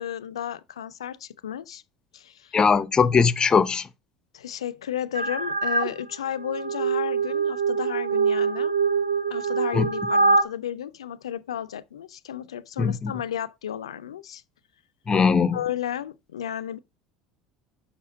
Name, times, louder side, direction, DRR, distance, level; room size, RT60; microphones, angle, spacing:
voice 1, 0.0-1.8 2.1-2.6 4.3-8.8 9.3-14.4 15.5-16.8, left 10 dB, 75° left, 0.5 m, -33 dB
voice 2, 2.5-3.8 9.7-9.9 12.8-13.1 15.1-15.6, left 5 dB, 25° left, 0.8 m, -20 dB
sound 1, 5.2-5.9 6.4-10.4, right 4 dB, 80° right, 0.8 m, -24 dB
6.8 x 5.6 x 5.1 m
figure-of-eight pair, 70°, 3 cm